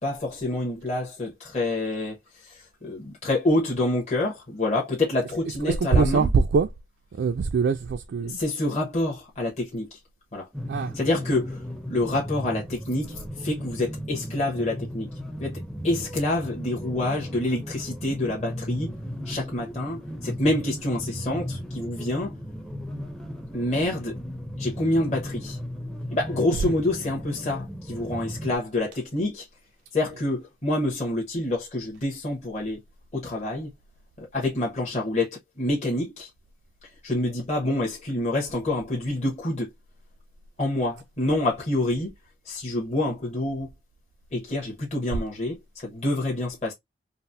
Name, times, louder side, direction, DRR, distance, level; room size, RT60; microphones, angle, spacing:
voice 1, 0.0-6.3 8.2-10.0 10.3-10.5 10.8-15.1 15.4-18.9 19.2-22.3 23.5-24.2 24.6-25.6 26.1-29.5 29.9-32.8 33.1-33.7 34.2-36.3 36.8-39.7 40.6-42.1 42.4-43.7 44.3-46.7, left 1 dB, 35° left, 0.9 m, -27 dB
voice 2, 5.6-6.7 7.1-8.4 10.7-11.0 26.6-26.7, right 5 dB, 65° right, 0.3 m, -23 dB
sound 1, 10.5-28.6, equal, ahead, 0.5 m, -36 dB
3.9 x 2.0 x 2.5 m
head